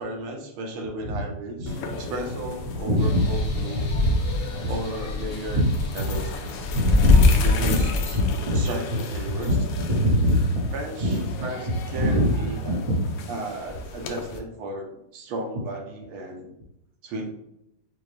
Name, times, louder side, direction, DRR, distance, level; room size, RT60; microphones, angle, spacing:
voice 1, 0.0-3.9 4.7-5.6 5.9-6.3 7.4-7.8 8.1-8.2 8.5-9.5 10.7-12.8 13.3-16.5 17.0-17.3, right 1 dB, 75° right, 1 dB, 1.6 m, -34 dB
sound 1, 1.7-14.4, left 3 dB, 75° left, 1.1 m, -26 dB
voice 2, 2.7-3.2 3.5-4.1 4.6-4.7 5.5-5.7 6.7-7.3 7.6-7.8 8.1-8.6 9.2-10.5 11.0-11.1 11.7-13.1, equal, 40° right, -3 dB, 0.5 m, -24 dB
sound 2, 3.0-7.4, left 1 dB, 50° left, 0.7 m, -37 dB
5.5 x 2.0 x 3.2 m, 0.81 s
omnidirectional pair, 2.3 m